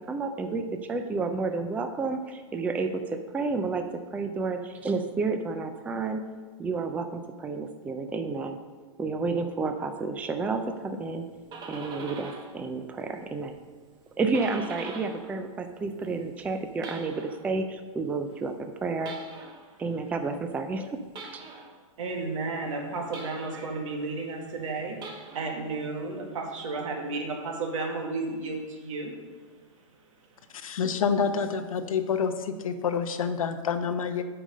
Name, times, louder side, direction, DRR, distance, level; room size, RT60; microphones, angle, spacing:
voice 1, 0.1-6.2 6.6-8.6 9.0-11.3 11.7-13.6 14.1-19.2 19.8-21.0 21.3-21.4, right 4 dB, 10° right, 7 dB, 0.4 m, -30 dB
sound 1, 11.2-12.6 12.9-15.3 15.6-17.5 19.0-19.7 21.1-21.8 23.1-23.8 24.9-25.7, right 4 dB, 25° right, 1.0 m, -43 dB
voice 2, 22.0-29.1, right 3 dB, 70° right, 2 dB, 1.9 m, -33 dB
voice 3, 30.8-32.3 32.6-34.2, left 6 dB, 85° left, 8 dB, 0.8 m, -27 dB
8.7 x 5.0 x 5.3 m, 1.4 s
hypercardioid pair, 135°, 17 cm